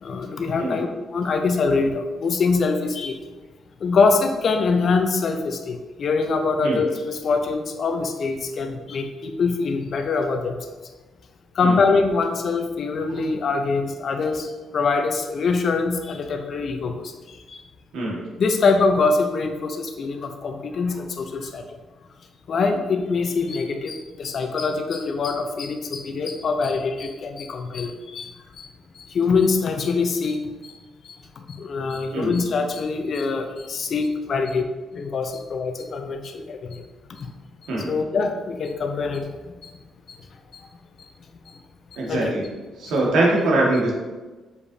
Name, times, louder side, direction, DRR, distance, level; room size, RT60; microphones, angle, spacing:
voice 1, 0.0-3.2 3.8-10.6 11.5-14.5 14.7-17.1 17.5-17.6 18.4-21.6 22.5-28.7 29.1-30.7 31.0-31.2 31.6-34.6 34.9-36.8 37.2-37.3 37.8-39.3 42.1-42.3, left 4 dB, 55° left, 5 dB, 0.7 m, -24 dB
voice 2, 42.0-42.4 42.8-43.9, right 2 dB, 80° right, -3 dB, 1.8 m, -22 dB
6.8 x 5.0 x 2.8 m, 1.2 s
cardioid pair, 90°, 0 cm